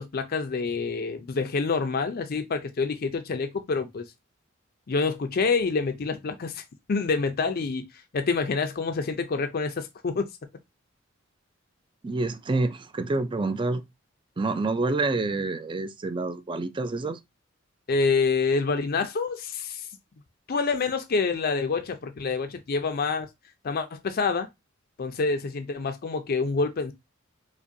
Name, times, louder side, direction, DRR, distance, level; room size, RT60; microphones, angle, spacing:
voice 1, 0.0-4.1 4.9-6.6 6.9-7.8 8.1-10.2 17.9-19.9 20.5-23.3 23.6-24.5 25.0-26.9, left 4 dB, 50° left, 0.5 m, -27 dB
voice 2, 12.0-13.8 14.4-17.2, right 3 dB, 25° right, 0.4 m, -27 dB
4.9 x 2.2 x 2.7 m
head